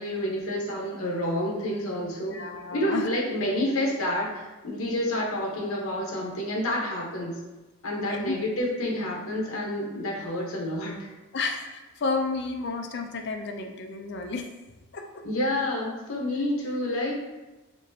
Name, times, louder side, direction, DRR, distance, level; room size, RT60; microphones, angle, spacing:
voice 1, 0.0-2.4 2.7-7.4 7.8-11.0 15.2-17.2, left 1 dB, 70° left, -2 dB, 1.0 m, -29 dB
voice 2, 2.3-3.1 8.0-8.4 11.3-14.5 14.9-15.2, left 3 dB, 50° left, 4 dB, 0.4 m, -31 dB
4.3 x 3.0 x 2.7 m, 1.1 s
head